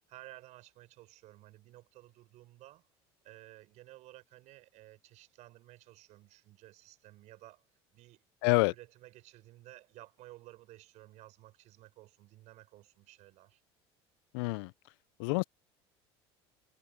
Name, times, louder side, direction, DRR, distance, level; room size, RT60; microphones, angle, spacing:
voice 1, 0.1-2.9 3.2-7.7 7.9-8.2 8.5-13.6, right 17 dB, 60° right, 5.2 m, -55 dB
voice 2, 8.4-8.7 14.3-14.7 15.2-15.4, left 29 dB, 75° left, 0.4 m, -27 dB
hypercardioid pair, 80°, 13 cm